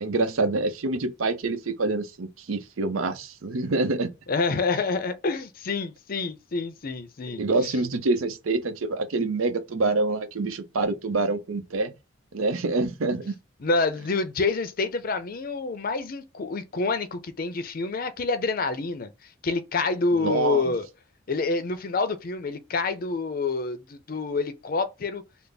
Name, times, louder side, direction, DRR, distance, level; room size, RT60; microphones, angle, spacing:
voice 1, 0.0-4.1 7.4-11.9 12.3-13.4 20.2-20.6, right 3 dB, 90° right, 0.6 m, -26 dB
voice 2, 4.3-7.7 13.6-19.1 19.4-20.9 21.3-25.2, left 3 dB, 45° left, 0.5 m, -27 dB
3.3 x 2.0 x 3.9 m
head